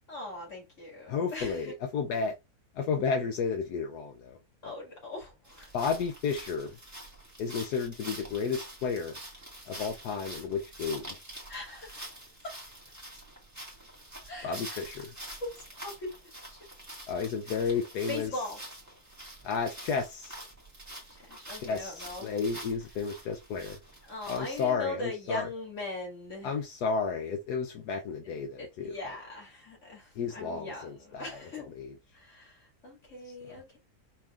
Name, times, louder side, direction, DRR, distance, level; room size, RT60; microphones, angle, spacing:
voice 1, 0.1-1.7 4.6-5.7 11.5-12.1 12.4-12.6 14.3-14.8 15.4-16.1 16.4-16.7 18.1-18.6 21.1-22.3 24.0-26.5 28.6-31.7 32.1-33.8, left 2 dB, 50° left, 2.7 m, -40 dB
voice 2, 1.1-2.4 2.7-4.4 5.7-6.8 7.4-9.2 9.7-11.2 14.4-15.1 17.1-18.3 19.4-20.4 21.6-23.8 24.3-25.5 26.4-29.0 30.2-31.4 31.7-31.9 33.2-33.3, left 5 dB, 80° left, 1.3 m, -32 dB
sound 1, 5.4-24.7, right 1 dB, 10° right, 1.7 m, -46 dB
5.6 x 3.4 x 2.4 m
omnidirectional pair, 1.7 m